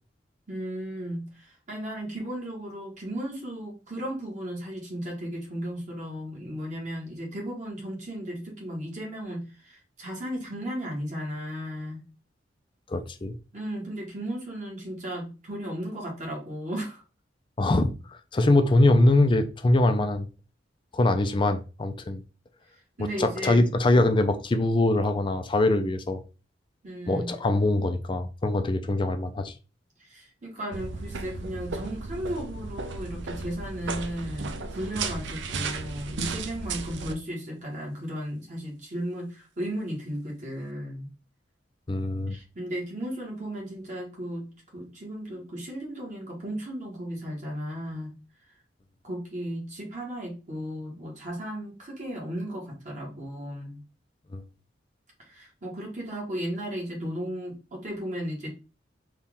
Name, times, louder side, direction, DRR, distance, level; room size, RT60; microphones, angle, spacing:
voice 1, 0.5-12.0 13.5-17.0 23.0-23.7 26.8-27.3 30.1-41.1 42.3-48.2 49.0-53.8 55.3-58.5, equal, 45° right, 1.4 m, -35 dB
voice 2, 12.9-13.4 17.6-20.3 20.9-22.2 23.0-26.2 27.1-29.5 41.9-42.4 54.3-54.4, left 2 dB, 25° left, 0.4 m, -23 dB
sound 1, 30.7-37.1, right 4 dB, 75° right, 0.5 m, -35 dB
4.2 x 2.4 x 3.6 m
head